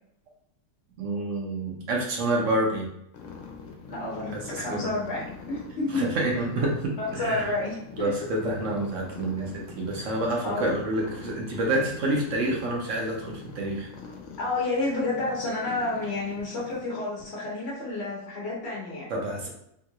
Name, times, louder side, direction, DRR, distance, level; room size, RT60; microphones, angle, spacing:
voice 1, 1.0-2.9 4.3-4.9 5.9-7.5 8.0-13.9 19.1-19.5, right 1 dB, 60° right, -1 dB, 1.1 m, -28 dB
sound 1, 3.1-16.8, left 4 dB, 65° left, 0.9 m, -44 dB
voice 2, 3.9-6.1 6.4-6.5 7.0-8.1 10.4-10.6 14.4-19.0, left 2 dB, 50° left, -6 dB, 1.1 m, -30 dB
3.7 x 2.5 x 2.8 m, 0.76 s
omnidirectional pair, 1.6 m